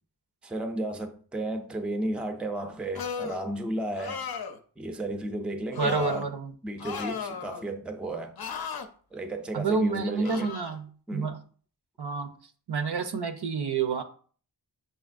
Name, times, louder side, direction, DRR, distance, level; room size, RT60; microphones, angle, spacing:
voice 1, 0.4-4.2 4.8-6.3 6.6-8.3 9.1-10.5 11.1-11.4, right 1 dB, 5° right, 0.4 m, -33 dB
sound 1, 2.9-3.4 3.9-4.6 5.7-6.2 6.8-7.6 8.4-8.9 10.2-10.7, left 5 dB, 60° left, 0.5 m, -35 dB
voice 2, 5.8-6.5 9.5-11.4 12.0-12.3 12.7-14.0, right 4 dB, 70° right, 0.6 m, -29 dB
6.3 x 2.7 x 2.4 m
wide cardioid pair, 55°, 41 cm